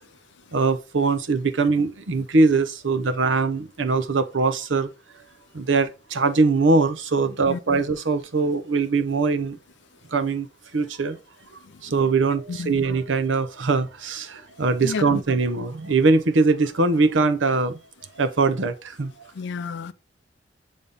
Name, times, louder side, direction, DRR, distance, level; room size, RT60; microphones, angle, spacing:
voice 1, 0.5-4.9 5.5-9.6 10.1-10.5 10.7-11.2 11.8-17.8 18.2-19.1, right 3 dB, 85° right, 0.7 m, -22 dB
voice 2, 7.5-7.8 11.7-11.8 12.5-12.8 14.8-15.2 19.3-19.9, left 5 dB, 65° left, 0.4 m, -31 dB
6.9 x 3.5 x 3.8 m
head